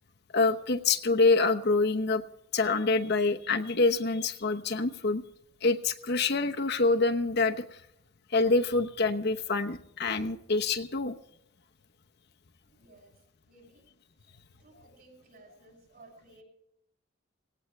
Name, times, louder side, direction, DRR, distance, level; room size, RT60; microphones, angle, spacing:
voice 1, 0.3-2.2 2.5-5.2 5.6-7.8 8.3-11.2, left 3 dB, 55° left, 6 dB, 1.0 m, -26 dB
voice 2, 12.7-13.2 13.4-13.9 14.2-14.3 14.6-16.4, right 2 dB, 50° right, 3 dB, 6.7 m, -57 dB
18.5 x 17.0 x 3.3 m, 0.78 s
head